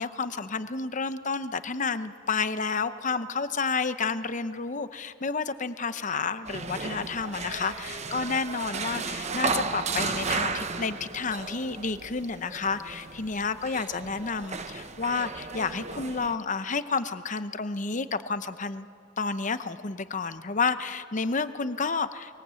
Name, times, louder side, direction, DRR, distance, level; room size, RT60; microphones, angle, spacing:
voice 1, 0.0-18.9 19.2-22.4, left 4 dB, 40° left, 12 dB, 0.8 m, -30 dB
sound 1, 6.5-16.4, right 4 dB, 35° right, 1.0 m, -34 dB
24.0 x 22.5 x 8.3 m, 2.4 s
head